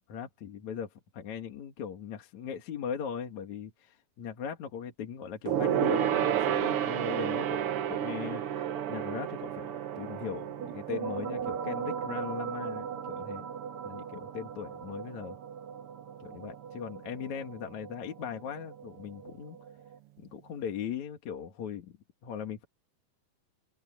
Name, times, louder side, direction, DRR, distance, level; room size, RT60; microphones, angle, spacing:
voice 1, 0.1-13.5 13.8-15.4 16.2-19.6 20.2-22.0 22.2-22.7, left 8 dB, 60° left, 3.2 m, -39 dB
Gong, 5.4-15.2 15.5-15.8 16.1-16.2, right 10 dB, 80° right, 1.3 m, -32 dB
sound 1, 10.6-20.0, right 7 dB, 60° right, 3.0 m, -40 dB
open air
omnidirectional pair, 3.9 m